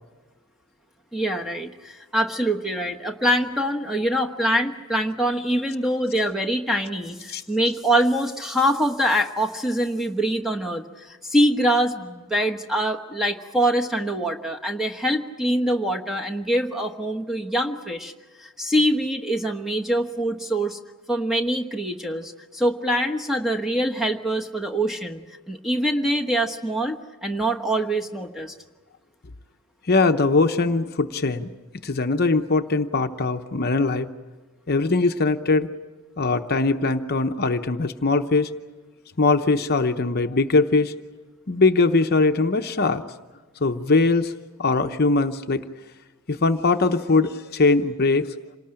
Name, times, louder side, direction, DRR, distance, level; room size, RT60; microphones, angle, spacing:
voice 1, 1.1-18.1 18.4-20.8 21.1-25.2 25.5-27.0 27.2-28.5, right 1 dB, ahead, 3 dB, 1.2 m, -24 dB
voice 2, 29.9-31.5 31.8-34.1 34.7-35.7 36.2-38.5 39.2-40.9 41.5-43.0 43.6-44.3 44.6-45.6 46.3-48.4, left 3 dB, 45° left, 7 dB, 0.8 m, -21 dB
27.0 x 19.0 x 8.9 m, 1.2 s
head